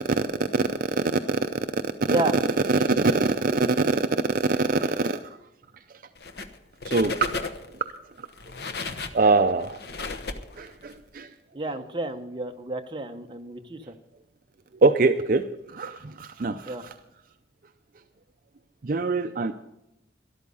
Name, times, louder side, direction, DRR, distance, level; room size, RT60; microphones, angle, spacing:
voice 1, 2.6-5.2 6.9-7.5 9.1-9.8 10.6-11.3 14.8-15.4 15.7-16.8 18.8-19.5, right 3 dB, 50° right, 8 dB, 0.5 m, -23 dB
sound 1, 6.2-6.6 6.8-7.8 8.3-11.0, left 4 dB, 60° left, 1.0 m, -34 dB
voice 2, 11.5-13.9 16.6-16.9, right 2 dB, 25° right, 4 dB, 0.8 m, -30 dB
13.0 x 11.5 x 5.5 m, 0.90 s
head